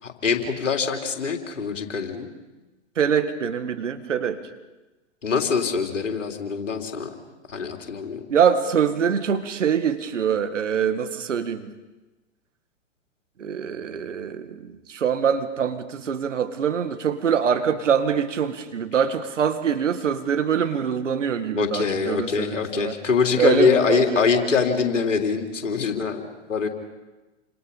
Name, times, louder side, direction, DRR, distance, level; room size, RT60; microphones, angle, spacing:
voice 1, 0.0-2.3 5.2-7.1 7.5-8.2 21.5-26.7, left 5 dB, 80° left, 3 dB, 3.5 m, -23 dB
voice 2, 3.0-4.4 8.3-11.7 13.4-23.0 23.4-24.2, right 7 dB, 75° right, 9 dB, 2.1 m, -24 dB
29.5 x 26.0 x 5.6 m, 1.1 s
hypercardioid pair, 115°, 37 cm